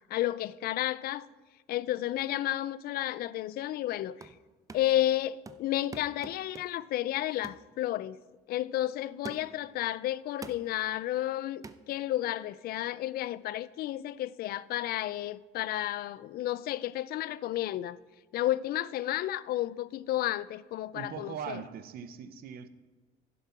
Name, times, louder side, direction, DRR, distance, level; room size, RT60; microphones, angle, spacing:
voice 1, 0.1-1.3 1.7-4.3 4.7-8.2 8.5-18.0 18.3-21.6, left 14 dB, 65° left, 0.4 m, -32 dB
sound 1, 3.9-4.4 4.7-5.1 5.4-6.9 7.4-7.7 8.2-8.3 9.2-9.7 10.4-10.7 11.6-11.8, right 4 dB, 20° right, 0.5 m, -46 dB
voice 2, 20.9-22.7, right 8 dB, 65° right, 0.7 m, -40 dB
10.5 x 6.9 x 5.8 m
cardioid pair, 110°, 17 cm